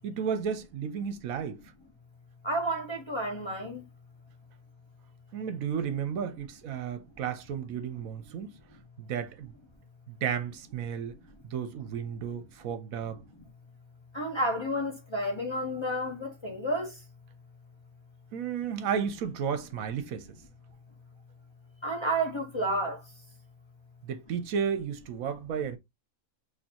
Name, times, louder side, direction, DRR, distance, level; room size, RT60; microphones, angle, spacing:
voice 1, 0.0-1.6 5.3-8.6 9.0-9.5 10.1-11.1 11.4-13.2 18.3-20.3 24.0-25.8, right 7 dB, 75° right, 1.1 m, -33 dB
voice 2, 2.4-3.8 14.1-16.9 21.8-23.0, right 1 dB, 25° left, 0.8 m, -30 dB
6.4 x 2.9 x 2.8 m
omnidirectional pair, 1.5 m